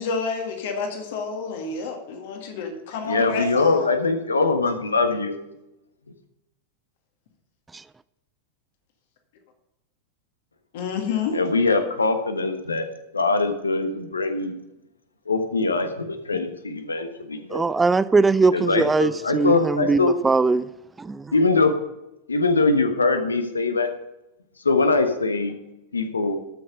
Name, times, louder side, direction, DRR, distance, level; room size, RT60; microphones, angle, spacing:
voice 1, 0.0-3.9 10.7-11.4 16.3-16.4, left 5 dB, 55° left, 2.0 m, -29 dB
voice 2, 3.1-5.4 11.3-12.8 13.1-14.6 15.3-17.6 18.5-20.1 21.3-21.7 22.3-23.9 24.6-25.6 25.9-26.4, left 3 dB, 75° left, 1.3 m, -22 dB
voice 3, 17.5-20.7 21.0-21.3, right 4 dB, 10° right, 0.4 m, -21 dB
13.5 x 6.5 x 5.1 m
figure-of-eight pair, 90°, 0 cm